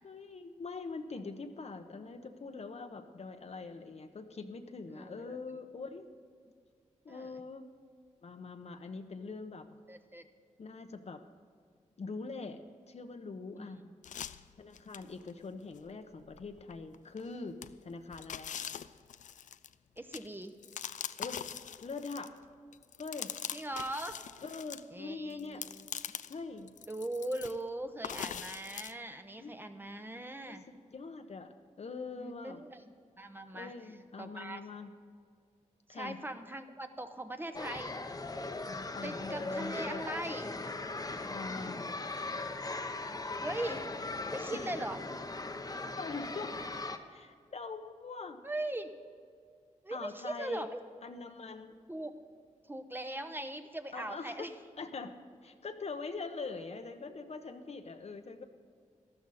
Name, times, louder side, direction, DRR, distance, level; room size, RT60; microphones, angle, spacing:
voice 1, 0.0-6.1 7.0-7.7 8.2-9.7 10.6-11.2 12.0-12.6 12.9-13.8 14.6-17.6 17.8-18.5 21.2-21.4 21.8-22.4 23.0-23.3 24.4-25.6 26.3-26.7 29.4-29.5 30.5-30.6 30.9-32.6 33.5-34.9 35.9-36.2 38.7-40.0 41.2-41.9 44.5-44.7 46.0-46.6 47.1-48.4 49.9-50.7 51.0-51.8 53.9-54.5 54.8-55.1 55.4-58.4, left 4 dB, 55° left, 7 dB, 0.9 m, -43 dB
voice 2, 4.9-5.4 7.1-7.4 9.9-10.2 13.6-13.9 20.0-20.5 23.5-24.2 24.9-25.8 26.9-30.6 32.2-33.7 34.2-34.6 35.9-38.0 39.0-40.5 43.4-43.9 44.3-45.0 48.4-48.9 49.8-50.8 51.9-52.1 52.7-54.5, right 1 dB, 15° right, 7 dB, 0.9 m, -40 dB
sound 1, 14.0-15.3 15.8-15.9 16.3-17.3 17.6-22.4 22.7-24.8 25.3-26.4 26.7-27.6 28.0-28.9, left 9 dB, 75° left, 0.4 m, -42 dB
sound 2, 37.5-47.0, left 2 dB, 30° left, 0.9 m, -39 dB
13.0 x 12.5 x 4.2 m, 2.1 s
cardioid pair, 70°, 13 cm